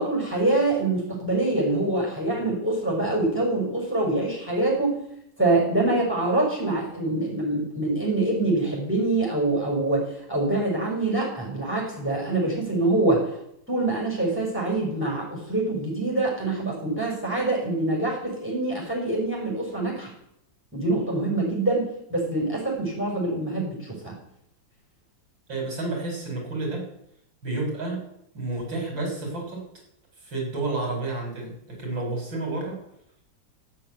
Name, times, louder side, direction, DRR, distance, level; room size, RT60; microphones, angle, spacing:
voice 1, 0.0-5.0 5.4-13.3 13.7-20.1 20.7-24.2, right 2 dB, 5° right, -2 dB, 6.1 m, -25 dB
voice 2, 25.5-26.9 27.4-28.0 28.3-29.6 30.2-32.8, right 2 dB, 85° right, 0 dB, 6.9 m, -30 dB
15.0 x 9.5 x 9.4 m, 0.76 s
omnidirectional pair, 2.0 m